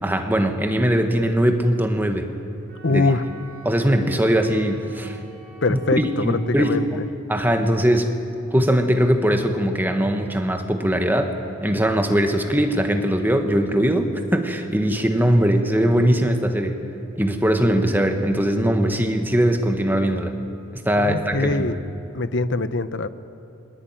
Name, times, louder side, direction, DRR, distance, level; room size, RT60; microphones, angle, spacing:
voice 1, 0.0-2.3 2.9-3.0 3.6-5.2 5.7-7.0 7.3-8.2 8.5-11.3 11.6-16.8 17.1-20.3 20.7-21.7, equal, 10° right, 5 dB, 1.5 m, -20 dB
Wind instrument woodwind instrument, 2.7-6.9, right 2 dB, 45° right, 5.0 m, -47 dB
voice 2, 2.8-3.2 5.6-6.9 21.0-21.8 22.1-23.1, left 3 dB, 60° left, 12 dB, 0.9 m, -23 dB
23.0 x 21.0 x 9.1 m, 2.7 s
head